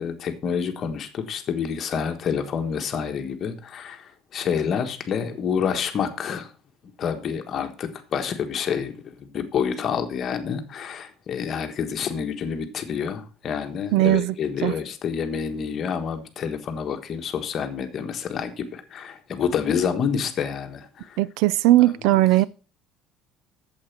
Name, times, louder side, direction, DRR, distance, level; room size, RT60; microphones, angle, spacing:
voice 1, 0.0-6.5 7.0-21.2 21.8-21.9 22.1-22.2, left 7 dB, 35° left, 1.4 m, -28 dB
voice 2, 13.9-14.3 14.6-14.7 21.2-22.4, right 16 dB, 75° right, 0.4 m, -18 dB
8.7 x 7.5 x 5.8 m
cardioid pair, 165°, 0 cm